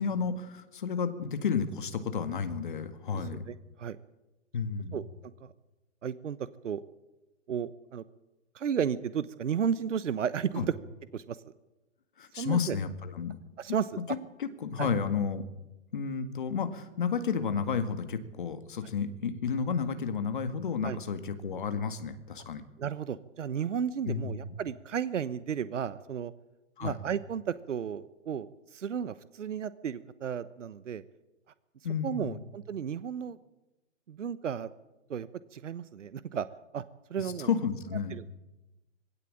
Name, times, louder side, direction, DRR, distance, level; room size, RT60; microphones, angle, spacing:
voice 1, 0.0-3.4 4.5-5.0 10.6-10.7 12.2-13.4 14.4-15.4 15.9-22.6 24.1-24.4 26.8-27.0 31.8-32.4 37.2-38.2, left 6 dB, 40° left, 9 dB, 1.9 m, -32 dB
voice 2, 3.1-4.0 4.9-5.0 5.4-5.5 6.0-6.4 6.6-6.8 7.5-8.0 8.5-10.7 11.1-11.4 12.4-12.8 13.6-14.0 14.8-14.9 18.8-18.9 20.8-21.0 22.8-26.3 26.8-31.0 32.0-33.4 34.1-34.7 35.1-36.5 36.7-36.8 37.1-37.5 38.1-38.2, right 8 dB, 75° right, 16 dB, 1.1 m, -33 dB
21.0 x 17.0 x 8.6 m, 1.0 s
hypercardioid pair, 180°, 37 cm